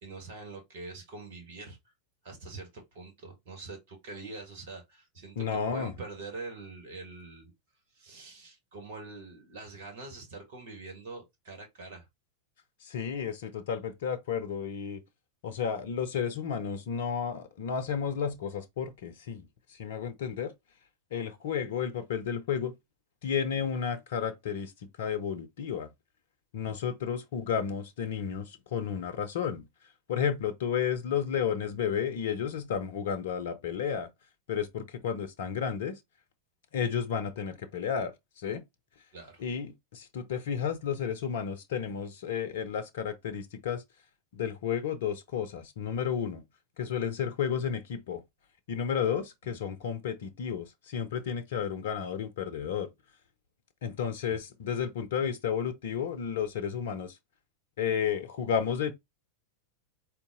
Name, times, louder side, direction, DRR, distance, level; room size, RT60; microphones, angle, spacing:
voice 1, 0.0-1.8 2.2-7.5 7.9-12.1 26.6-26.8 39.1-39.4 54.3-54.4, right 3 dB, 55° right, 2.0 m, -44 dB
voice 2, 5.4-5.9 12.8-15.0 15.4-20.5 21.1-22.7 23.2-25.9 26.5-29.7 30.1-34.1 34.5-36.0 36.7-38.6 39.4-43.8 44.3-46.4 46.8-48.2 48.7-52.9 53.8-57.2 57.8-58.9, left 7 dB, 55° left, 0.7 m, -32 dB
4.0 x 2.9 x 3.7 m
figure-of-eight pair, 90°, 0 cm